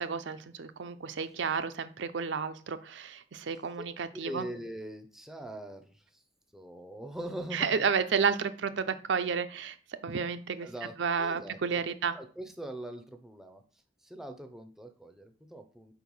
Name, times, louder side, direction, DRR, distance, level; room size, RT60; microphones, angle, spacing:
voice 1, 0.0-4.4 7.5-9.8 10.0-10.7 11.0-12.1, right 6 dB, 80° right, 11 dB, 0.5 m, -31 dB
voice 2, 4.2-6.0 6.5-7.9 10.6-11.6 12.1-13.6 14.0-15.9, right 1 dB, ahead, 7 dB, 0.5 m, -42 dB
4.6 x 4.4 x 5.4 m, 0.40 s
head